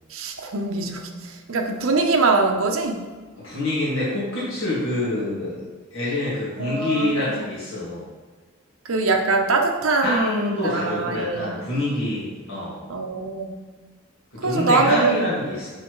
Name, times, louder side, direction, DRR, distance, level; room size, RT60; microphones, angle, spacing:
voice 1, 0.1-3.0 6.6-7.3 8.9-11.5 12.9-13.6 14.4-15.2, right 3 dB, 75° right, 2 dB, 0.7 m, -23 dB
voice 2, 3.4-5.6 5.9-8.1 10.0-12.8 14.3-15.7, left 1 dB, 65° left, -8 dB, 1.9 m, -26 dB
6.7 x 5.7 x 3.1 m, 1.4 s
head